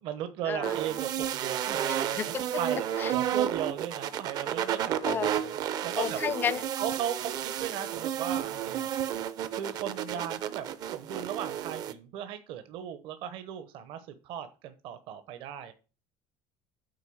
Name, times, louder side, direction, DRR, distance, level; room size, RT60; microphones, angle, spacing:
voice 1, 0.0-6.2 6.8-8.9 9.5-15.7, right 10 dB, 55° right, 1.0 m, -37 dB
sound 1, 0.6-11.9, right 10 dB, 40° right, 0.6 m, -32 dB
voice 2, 2.1-2.5 3.0-3.1 5.0-5.3 6.0-6.6, left 7 dB, 20° left, 0.4 m, -31 dB
8.1 x 4.6 x 7.0 m
cardioid pair, 175°, 10 cm